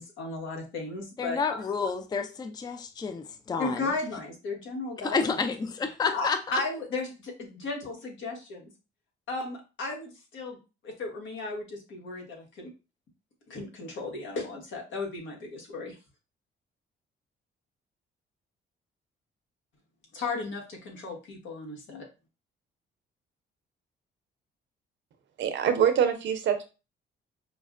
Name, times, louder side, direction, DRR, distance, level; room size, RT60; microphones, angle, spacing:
voice 1, 0.0-1.6 3.6-5.4 6.1-8.7 9.3-10.6 10.8-12.7 13.5-16.0 20.1-22.1, left 3 dB, 75° left, 1.2 m, -35 dB
voice 2, 1.2-3.9 5.0-6.4, left 5 dB, 20° left, 0.4 m, -30 dB
voice 3, 25.4-26.6, right 8 dB, 70° right, 0.6 m, -24 dB
5.1 x 2.1 x 2.4 m
cardioid pair, 90°, 20 cm